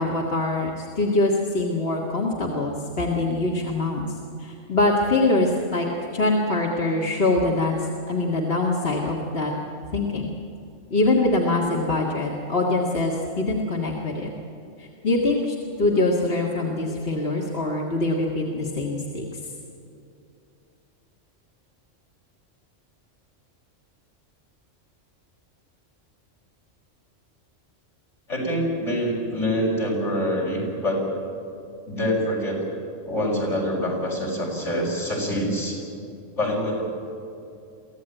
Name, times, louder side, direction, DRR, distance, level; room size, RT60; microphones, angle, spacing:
voice 1, 0.0-4.1 4.4-5.9 6.1-9.5 9.9-10.3 10.9-14.3 14.8-19.4, left 2 dB, 55° left, -2 dB, 2.1 m, -24 dB
voice 2, 28.3-31.0 31.9-32.6 33.0-35.8 36.4-36.8, equal, 70° left, -2 dB, 6.1 m, -25 dB
23.5 x 15.5 x 9.0 m, 2.7 s
omnidirectional pair, 1.3 m